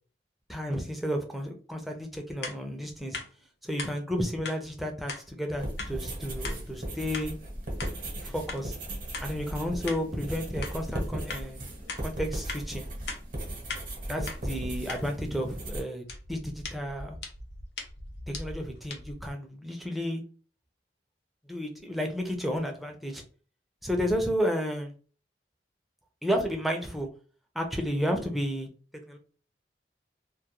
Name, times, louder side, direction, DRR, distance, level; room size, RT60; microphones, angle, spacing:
voice 1, 0.5-3.2 3.6-7.3 8.2-8.8 9.2-11.7 12.0-12.9 14.1-17.2 18.3-20.2 21.5-23.2 23.8-24.9 26.2-27.1 27.5-28.7 29.1-29.2, equal, ahead, 2 dB, 0.4 m, -32 dB
sound 1, 2.4-2.6 3.1-3.3 3.8-3.9 4.4-4.6 5.1-5.2 5.8-5.9 6.4-6.6 7.1-7.3 7.8-7.9 8.5-8.6 9.1-9.3 9.9-10.0 10.6-10.8 11.3-11.4 11.9-12.0 12.5-12.6 13.1-13.2 13.7-13.8 14.3-14.4 14.9-15.0 16.1-19.3, left 3 dB, 70° left, 0.6 m, -39 dB
sound 2, 5.6-15.8, right 1 dB, 50° right, 0.8 m, -37 dB
2.3 x 2.1 x 2.9 m, 0.40 s
head